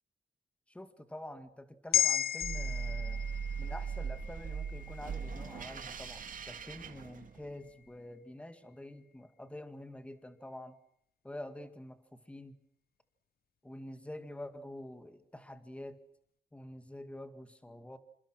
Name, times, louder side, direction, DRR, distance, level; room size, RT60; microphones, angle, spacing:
voice 1, 0.7-3.3 3.6-10.7 11.2-12.6 13.6-16.0 16.5-18.0, left 1 dB, 5° left, 9 dB, 2.0 m, -47 dB
sound 1, 1.9-6.4 6.8-7.0, left 9 dB, 65° left, 1.0 m, -35 dB
sound 2, 2.4-7.7, right 6 dB, 55° right, 2.2 m, -39 dB
28.5 x 26.5 x 6.2 m, 0.71 s
wide cardioid pair, 165°, 17 cm